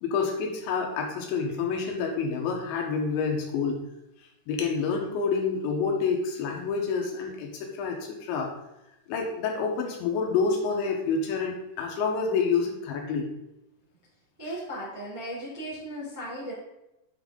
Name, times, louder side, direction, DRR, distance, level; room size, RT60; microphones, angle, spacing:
voice 1, 0.0-3.8 4.5-8.5 9.1-13.3, left 5 dB, 80° left, 1 dB, 3.2 m, -28 dB
voice 2, 14.4-16.5, equal, 5° right, -8 dB, 1.8 m, -36 dB
8.3 x 5.5 x 3.8 m, 0.90 s
omnidirectional pair, 5.5 m